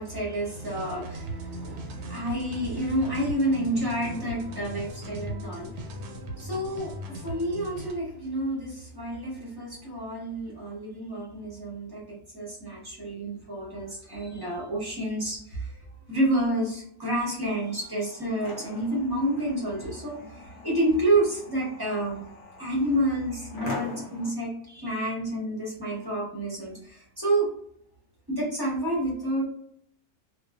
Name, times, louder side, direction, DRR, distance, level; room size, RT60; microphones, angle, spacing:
voice 1, 0.0-5.9 6.4-15.7 16.1-22.2 22.6-27.5 28.3-29.4, right 1 dB, 20° right, -6 dB, 0.6 m, -29 dB
sound 1, 0.5-7.9, right 1 dB, 85° right, 1.1 m, -38 dB
sound 2, 17.5-24.3, left 3 dB, 65° left, 0.6 m, -43 dB
2.4 x 2.2 x 2.3 m, 0.69 s
omnidirectional pair, 1.6 m